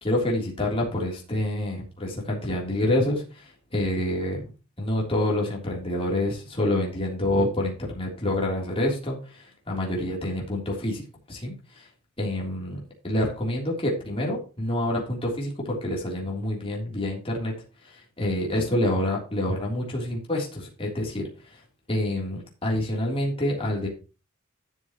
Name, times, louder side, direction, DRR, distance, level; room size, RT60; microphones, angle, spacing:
voice 1, 0.0-4.5 4.8-11.9 12.2-12.8 13.0-17.5 17.8-21.6 21.9-23.9, left 1 dB, 25° left, -2 dB, 3.4 m, -27 dB
12.5 x 7.5 x 3.1 m, 0.32 s
head